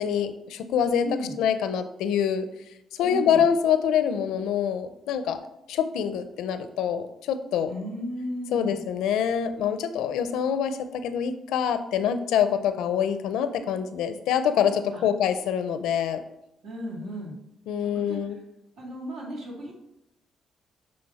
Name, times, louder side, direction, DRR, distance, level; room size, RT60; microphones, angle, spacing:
voice 1, 0.0-1.1 1.4-2.4 2.9-5.4 5.7-7.7 8.5-16.2 17.7-18.4, left 8 dB, 90° left, 10 dB, 0.5 m, -25 dB
voice 2, 1.0-1.3 3.0-3.4 7.7-8.7 14.9-15.0 16.6-17.3 17.8-18.2 18.8-19.7, equal, 75° right, -3 dB, 2.5 m, -35 dB
8.9 x 3.4 x 4.1 m, 0.85 s
cardioid pair, 90°, 0 cm